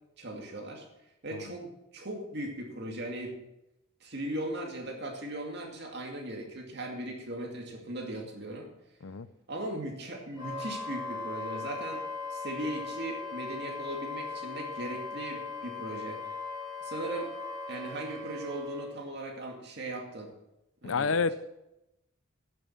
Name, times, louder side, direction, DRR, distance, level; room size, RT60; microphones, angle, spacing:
voice 1, 0.2-0.9 1.2-3.4 4.0-8.7 9.5-12.0 12.3-16.3 16.8-17.3 17.7-20.3 20.8-21.1, right 1 dB, 50° right, 1 dB, 2.3 m, -38 dB
Wind instrument woodwind instrument, 10.3-18.9, left 4 dB, 15° right, 4.2 m, -39 dB
voice 2, 20.8-21.3, left 5 dB, 75° left, 15 dB, 0.6 m, -29 dB
10.5 x 7.1 x 7.3 m, 0.90 s
head